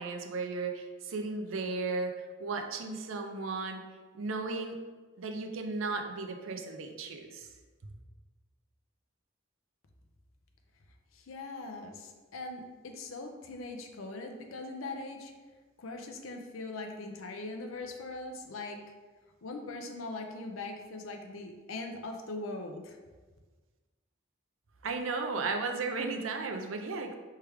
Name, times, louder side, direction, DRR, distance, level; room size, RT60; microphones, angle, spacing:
voice 1, 0.0-3.8 4.1-4.8 5.2-7.5 7.8-7.9 24.8-27.1, right 3 dB, 85° right, 4 dB, 0.5 m, -35 dB
voice 2, 11.1-15.3 15.8-18.8 19.4-23.0, left 2 dB, 85° left, 4 dB, 0.6 m, -41 dB
4.5 x 3.3 x 3.4 m, 1.3 s
head